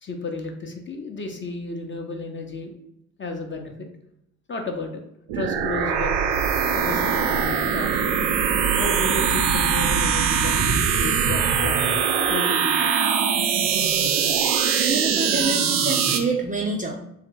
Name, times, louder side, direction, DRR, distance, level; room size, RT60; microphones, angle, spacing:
voice 1, 0.0-2.7 3.2-3.9 4.5-5.0 5.3-6.2 6.7-8.3 8.7-11.9 12.3-13.0, left 3 dB, 25° left, 3 dB, 0.7 m, -32 dB
sound 1, 5.3-16.2, right 7 dB, 70° right, 0.6 m, -22 dB
voice 2, 14.8-17.0, right 3 dB, 20° right, 0 dB, 0.5 m, -26 dB
3.2 x 2.8 x 3.6 m, 0.78 s
hypercardioid pair, 45°, 43 cm